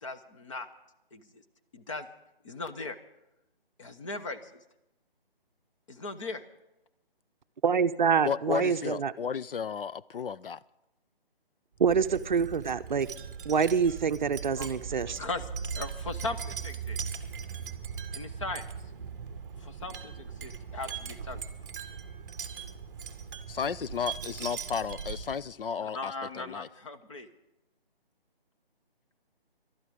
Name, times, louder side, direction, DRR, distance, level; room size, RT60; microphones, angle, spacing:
voice 1, 0.0-0.7 1.1-1.2 1.7-2.1 2.4-3.0 3.8-4.5 5.9-6.4 14.6-14.7 15.2-15.5 15.7-17.0 18.1-18.6 19.6-21.4 25.8-27.3, left 3 dB, 30° left, 8 dB, 0.9 m, -38 dB
voice 2, 7.6-9.1 11.8-13.1 13.5-15.2, right 6 dB, 50° right, 11 dB, 0.6 m, -26 dB
voice 3, 8.2-10.6 23.5-26.7, left 7 dB, 65° left, 17 dB, 0.5 m, -33 dB
Wind chime, 11.8-25.5, right 6 dB, 20° right, 0.9 m, -39 dB
19.0 x 12.0 x 5.1 m, 0.91 s
figure-of-eight pair, 155°, 30 cm